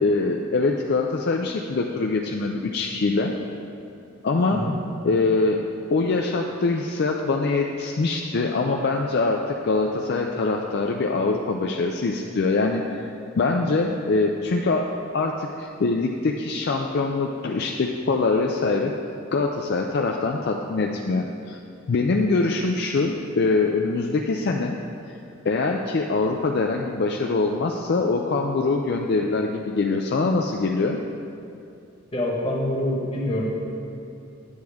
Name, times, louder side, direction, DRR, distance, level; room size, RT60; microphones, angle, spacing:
voice 1, 0.0-3.4 4.2-4.7 5.0-5.6 5.9-13.1 13.4-14.9 15.1-18.9 19.3-21.6 21.9-24.8 25.1-25.2 25.4-31.0, left 3 dB, 55° left, 1 dB, 0.4 m, -23 dB
voice 2, 32.1-33.4, left 1 dB, 25° left, -3 dB, 1.3 m, -25 dB
9.6 x 7.6 x 3.5 m, 2.6 s
head